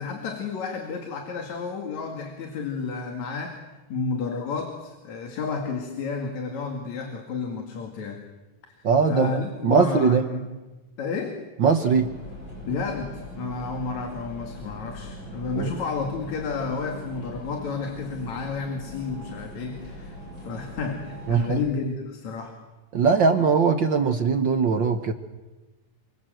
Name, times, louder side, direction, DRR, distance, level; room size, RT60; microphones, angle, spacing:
voice 1, 0.0-3.6 3.9-8.2 8.8-10.5 11.0-11.4 12.6-20.2 20.4-22.6, left 4 dB, 70° left, 3 dB, 3.5 m, -31 dB
voice 2, 8.8-9.3 9.6-10.2 11.6-12.1 15.6-15.7 21.3-21.6 22.9-25.1, right 5 dB, 55° right, 7 dB, 1.3 m, -20 dB
sound 1, 11.9-21.7, left 1 dB, 40° left, 6.8 m, -41 dB
29.0 x 24.0 x 7.8 m, 1.2 s
omnidirectional pair, 3.4 m